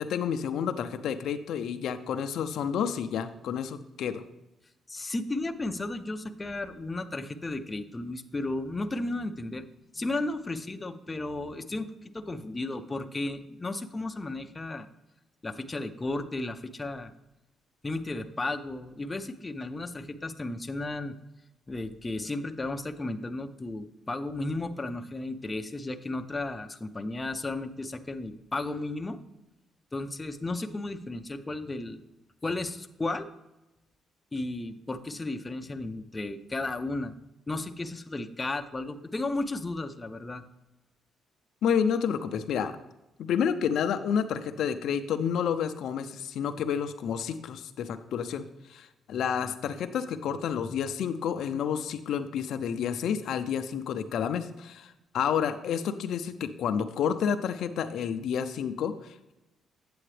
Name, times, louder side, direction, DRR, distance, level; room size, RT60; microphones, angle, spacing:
voice 1, 0.0-4.2 41.6-42.8 43.2-48.4 48.7-59.3, left 7 dB, 75° left, 9 dB, 0.5 m, -30 dB
voice 2, 4.9-9.7 9.9-14.9 15.4-17.1 17.8-21.1 21.7-29.2 29.9-32.0 32.4-33.3 34.3-37.2 37.5-40.4, left 2 dB, 20° left, 8 dB, 0.6 m, -34 dB
8.7 x 7.7 x 3.3 m, 0.96 s
cardioid pair, 90°, 0 cm